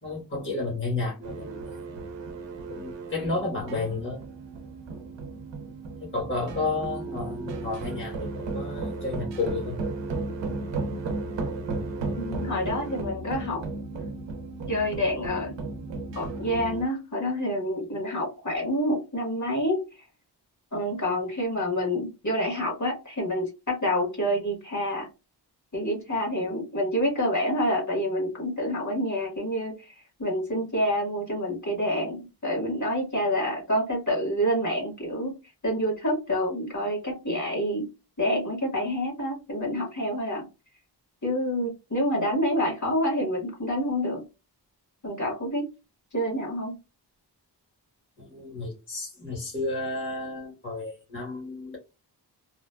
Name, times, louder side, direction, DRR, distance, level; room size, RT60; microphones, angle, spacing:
voice 1, 0.0-1.8 2.7-4.2 6.0-9.8 48.2-51.8, left 3 dB, 30° left, -4 dB, 1.2 m, -32 dB
sound 1, 1.2-16.8, right 3 dB, 85° right, 0.6 m, -34 dB
voice 2, 12.2-13.6 14.7-15.5 16.1-19.8 20.7-25.1 25.7-29.9 30.2-35.3 35.6-37.8 38.2-40.4 41.2-44.2 45.0-45.6 46.1-46.8, equal, 45° left, -1 dB, 1.4 m, -27 dB
2.9 x 2.3 x 2.2 m, 0.28 s
wide cardioid pair, 125°, 43 cm